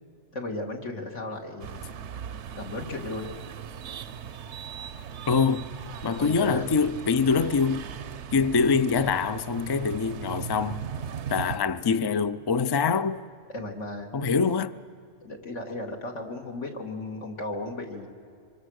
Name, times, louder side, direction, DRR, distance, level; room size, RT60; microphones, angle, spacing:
voice 1, 0.3-1.9 2.5-3.3 6.2-6.7 13.5-14.1 15.2-18.1, left 2 dB, 80° left, 2.5 m, -35 dB
sound 1, 1.6-11.6, right 7 dB, 75° right, 1.0 m, -38 dB
voice 2, 5.3-5.6 6.0-7.9 8.3-10.8 11.3-13.2 14.1-14.8, left 5 dB, 40° left, 0.3 m, -24 dB
26.0 x 24.5 x 6.4 m
omnidirectional pair, 1.2 m